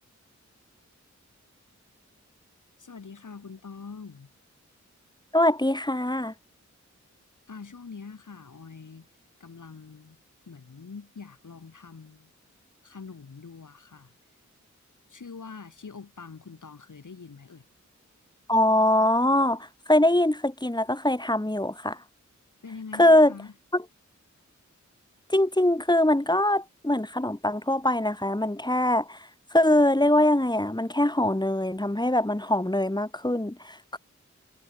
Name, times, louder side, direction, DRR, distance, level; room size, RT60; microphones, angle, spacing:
voice 1, 2.8-4.3 7.5-9.1 9.4-10.2 10.5-12.3 12.8-14.1 15.1-17.6 22.6-23.5, left 5 dB, 90° left, 6.5 m, -44 dB
voice 2, 5.3-6.3 18.5-22.0 23.0-23.3 23.7-23.8 25.3-29.2 29.5-34.0, left 1 dB, 15° left, 3.9 m, -23 dB
wide cardioid pair, 60°, 30 cm